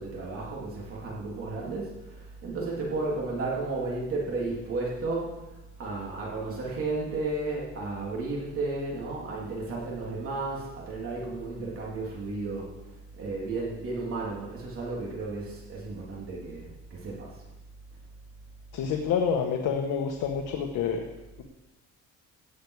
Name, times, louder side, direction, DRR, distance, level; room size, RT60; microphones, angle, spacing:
voice 1, 0.0-5.5 5.8-12.7 13.1-17.4, right 3 dB, 45° right, -3 dB, 3.2 m, -33 dB
voice 2, 18.7-21.0, left 6 dB, 70° left, 2 dB, 1.4 m, -28 dB
17.0 x 9.6 x 4.8 m, 1.1 s
cardioid pair, 170°, 31 cm